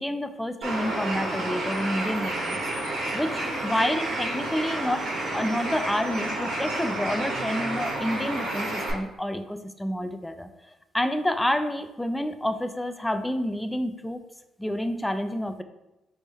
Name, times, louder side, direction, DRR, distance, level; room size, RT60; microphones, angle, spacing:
voice 1, 0.0-2.6 2.9-5.1 5.3-10.5 10.9-14.2 14.6-15.6, left 1 dB, 10° left, 9 dB, 0.4 m, -29 dB
Bird, 0.6-8.9, right 2 dB, 80° right, 1.5 m, -30 dB
3.4 x 3.4 x 4.1 m, 0.96 s
cardioid pair, 90°, 0 cm